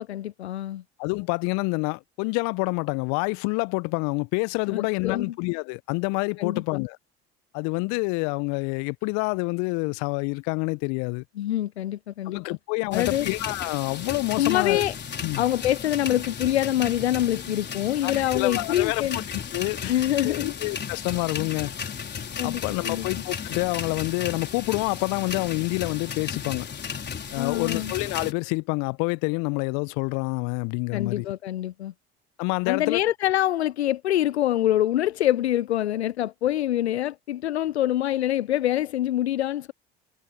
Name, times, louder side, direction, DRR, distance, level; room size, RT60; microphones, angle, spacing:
voice 1, 0.0-0.8 4.7-5.3 6.4-6.6 11.4-12.4 12.9-13.3 14.4-14.9 15.4-19.2 19.9-20.5 22.4-23.1 27.4-27.9 30.9-31.9 32.7-39.7, left 13 dB, 85° left, 0.5 m, -25 dB
voice 2, 1.0-7.0 7.5-11.2 12.3-14.8 15.2-15.4 18.0-19.9 20.2-21.7 22.4-26.7 27.3-31.3 32.4-33.0, left 32 dB, 60° left, 1.0 m, -27 dB
sound 1, 12.9-28.3, left 7 dB, 35° left, 5.0 m, -34 dB
figure-of-eight pair, 60°, 32 cm